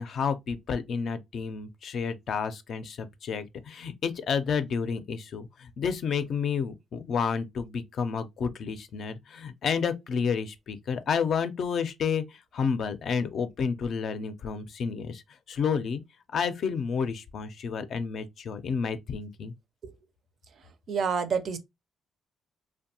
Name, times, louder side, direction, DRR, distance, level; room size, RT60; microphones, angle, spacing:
voice 1, 0.0-12.2 12.5-15.2 15.5-16.0 16.3-19.5, left 6 dB, 60° left, 0.4 m, -30 dB
voice 2, 20.9-21.6, right 6 dB, 60° right, 0.4 m, -28 dB
2.6 x 2.1 x 2.7 m
cardioid pair, 90°, 0 cm